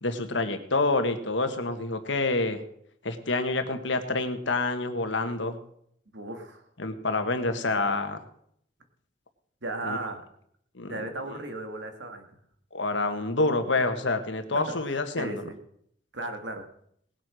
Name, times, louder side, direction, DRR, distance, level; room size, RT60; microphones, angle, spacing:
voice 1, 0.0-2.6 3.0-5.6 6.8-8.2 9.8-10.0 10.7-11.0 11.2-11.4 12.7-15.4, left 3 dB, 75° left, 8 dB, 1.6 m, -27 dB
voice 2, 6.1-6.6 9.6-10.2 10.9-12.3 15.2-15.5 16.1-16.6, right 2 dB, 75° right, 6 dB, 2.1 m, -35 dB
19.0 x 7.8 x 6.3 m, 0.69 s
head